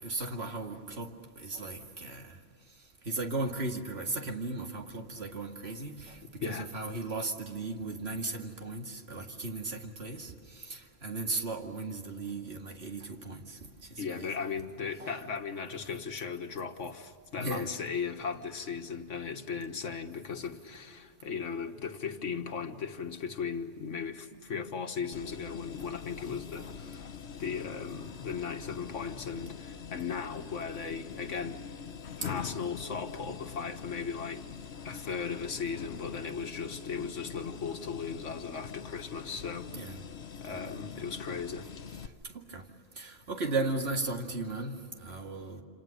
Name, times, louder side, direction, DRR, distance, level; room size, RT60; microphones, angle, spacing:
voice 1, 0.0-2.4 3.0-13.6 13.9-14.3 15.0-15.2 17.4-17.7 26.6-26.7 32.2-32.3 39.7-40.0 40.4-40.6 42.2-42.6 43.0-45.6, right 2 dB, 60° right, 2.4 m, -36 dB
voice 2, 14.0-27.1 27.4-31.6 32.3-34.4 34.8-39.7 40.4-41.7, left 6 dB, 90° left, 1.8 m, -37 dB
sound 1, 25.1-42.1, left 7 dB, 65° left, 1.2 m, -44 dB
28.0 x 28.0 x 6.6 m
omnidirectional pair, 1.2 m